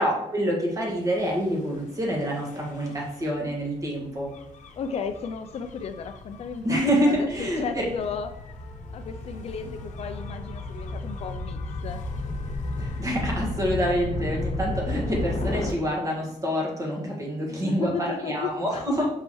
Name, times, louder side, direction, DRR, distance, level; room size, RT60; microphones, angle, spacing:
voice 1, 0.0-4.3 6.6-7.8 12.8-19.1, equal, 25° right, -2 dB, 1.7 m, -27 dB
Gull seagull / Waves surf / Siren, 1.0-15.7, left 2 dB, 80° left, 0.9 m, -34 dB
voice 2, 4.8-8.3 8.9-12.0 17.5-18.8, left 6 dB, 55° left, 8 dB, 0.4 m, -34 dB
5.7 x 5.3 x 3.1 m, 0.83 s
wide cardioid pair, 165°, 13 cm